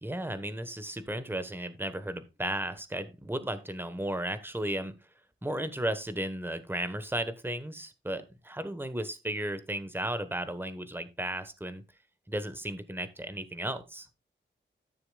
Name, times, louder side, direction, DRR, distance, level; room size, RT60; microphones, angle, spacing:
voice 1, 0.0-4.9 5.4-11.8 12.3-14.1, right 1 dB, 10° right, 11 dB, 1.2 m, -34 dB
13.0 x 6.9 x 2.3 m, 0.26 s
wide cardioid pair, 75°, 20 cm